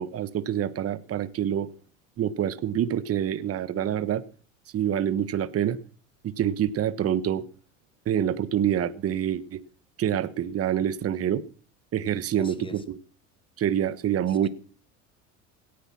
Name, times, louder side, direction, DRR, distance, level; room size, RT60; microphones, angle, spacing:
voice 1, 0.0-1.7 2.2-4.2 4.7-5.8 6.2-7.4 8.0-9.6 10.0-11.4 11.9-13.0 13.6-14.5, right 10 dB, 35° right, 15 dB, 1.3 m, -26 dB
voice 2, 12.4-12.8 14.4-14.5, left 3 dB, 15° left, 12 dB, 2.4 m, -43 dB
17.5 x 10.0 x 5.9 m, 0.41 s
hypercardioid pair, 85°, 39 cm